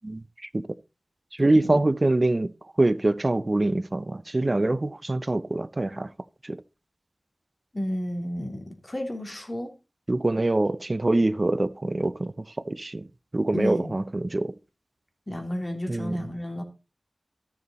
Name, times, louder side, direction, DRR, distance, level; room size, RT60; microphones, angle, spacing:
voice 1, 1.4-2.5 2.8-6.1 6.5-6.6 10.1-12.3 12.7-13.0 13.3-14.5 15.9-16.1, right 2 dB, 40° right, 0.6 m, -24 dB
voice 2, 7.7-9.7 13.5-13.9 15.3-16.6, equal, 25° left, 3.0 m, -31 dB
14.0 x 6.9 x 4.2 m
wide cardioid pair, 70°, 0 cm